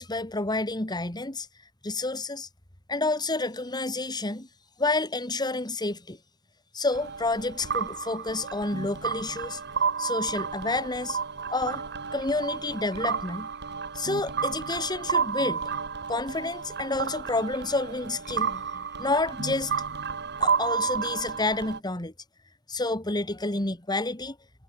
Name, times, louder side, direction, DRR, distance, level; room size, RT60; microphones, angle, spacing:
voice 1, 0.0-1.5 1.8-2.5 2.9-4.5 4.8-6.2 6.7-9.6 10.0-11.2 11.5-11.8 12.1-13.5 13.9-15.7 16.1-19.7 20.4-22.1 22.7-24.4, left 2 dB, 20° left, 2.5 m, -29 dB
sound 1, 6.9-21.8, right 6 dB, 50° right, 5.8 m, -31 dB
head